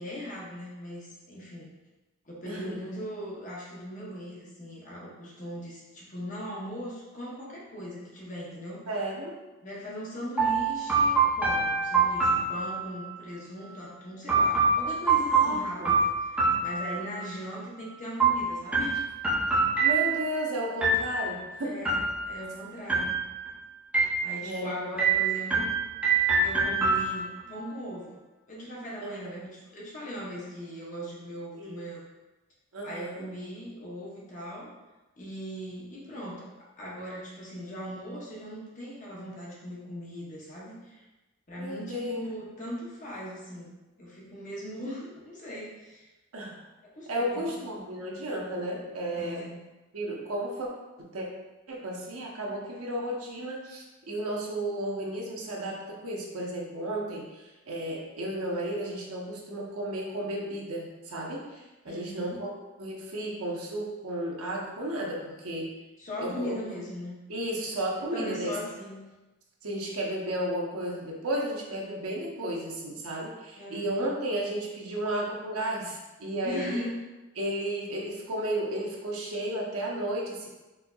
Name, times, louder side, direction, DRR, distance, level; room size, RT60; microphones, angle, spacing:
voice 1, 0.0-1.7 2.3-8.8 9.6-19.0 19.5-19.6 21.6-23.2 24.2-25.7 26.4-28.2 28.5-32.0 32.8-34.7 35.2-36.5 36.8-41.0 41.5-43.7 44.0-46.1 46.8-47.5 49.2-49.6 61.9-62.4 66.0-67.1 68.1-69.1 73.6-74.0 76.4-77.0, equal, 35° left, -5 dB, 0.7 m, -39 dB
voice 2, 2.5-2.8 8.9-9.4 15.3-15.9 19.8-21.8 24.4-24.7 29.0-29.4 31.5-31.8 32.7-33.3 41.5-42.3 46.3-46.6 47.1-49.5 49.9-50.7 51.1-51.3 51.7-62.5 62.8-65.7 66.2-66.6 67.3-68.6 69.6-76.9 77.4-80.5, right 1 dB, 90° right, -2 dB, 0.7 m, -33 dB
sound 1, 10.4-13.1 14.3-17.3 18.2-20.4 20.8-21.4 21.8-22.5 22.9-23.5 23.9-24.6 25.0-27.5, right 4 dB, 5° right, 0.6 m, -25 dB
4.3 x 2.6 x 2.3 m, 1.1 s
head